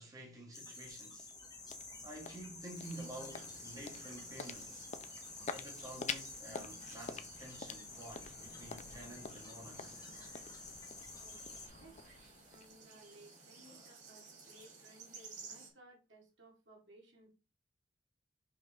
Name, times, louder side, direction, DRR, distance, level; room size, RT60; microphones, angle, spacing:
voice 1, 0.0-1.4 2.0-4.9 5.5-10.0 13.7-13.9, right 1 dB, 20° right, 1.6 m, -50 dB
sound 1, 0.5-11.7, left 3 dB, 20° left, 1.2 m, -51 dB
sound 2, 1.0-13.1, left 5 dB, 40° left, 0.5 m, -49 dB
sound 3, 2.8-15.7, right 4 dB, 40° right, 2.2 m, -56 dB
voice 2, 12.5-17.3, right 1 dB, 70° right, 2.1 m, -60 dB
5.7 x 5.2 x 3.4 m
head